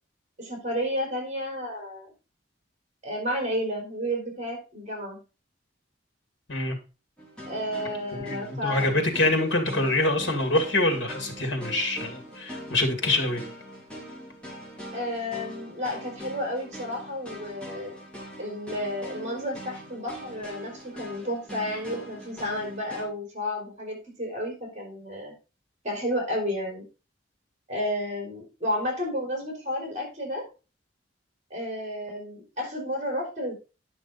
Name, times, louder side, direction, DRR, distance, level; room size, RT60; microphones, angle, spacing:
voice 1, 0.4-2.1 3.0-5.2 7.5-8.9 14.9-18.0 18.4-25.3 25.8-26.8 27.7-30.4 31.5-33.5, equal, 40° right, 4.3 m, -31 dB
sound 1, 7.2-23.0, equal, 5° left, 3.4 m, -42 dB
voice 2, 8.1-13.4, left 2 dB, 75° left, 2.5 m, -25 dB
10.0 x 6.3 x 4.1 m
head